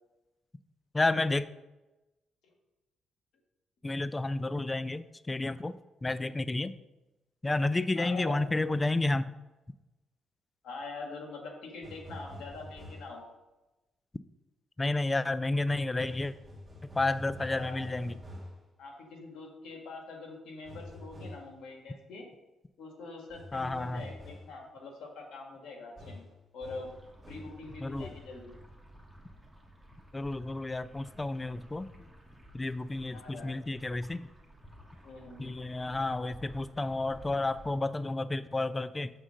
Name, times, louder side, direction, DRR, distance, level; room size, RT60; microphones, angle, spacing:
voice 1, 0.9-1.5 3.8-6.7 7.4-9.3 14.8-16.3 16.8-18.2 23.5-24.1 27.8-28.1 30.1-31.9 32.5-34.3 35.4-39.1, left 2 dB, 20° left, 15 dB, 0.3 m, -31 dB
voice 2, 7.9-8.4 10.6-13.2 17.4-17.8 18.8-22.3 22.8-26.2 26.5-26.9 27.3-28.5 30.1-30.2 33.1-33.5 35.0-35.5, left 3 dB, 75° left, 1 dB, 1.7 m, -44 dB
sound 1, 11.8-13.2 16.0-18.6 20.6-21.5 23.3-24.6 26.0-27.6 27.9-28.3, left 1 dB, 15° right, 2.1 m, -47 dB
sound 2, 26.8-37.8, equal, ahead, 1.4 m, -54 dB
6.6 x 3.6 x 6.3 m, 1.0 s
cardioid pair, 90°, 0 cm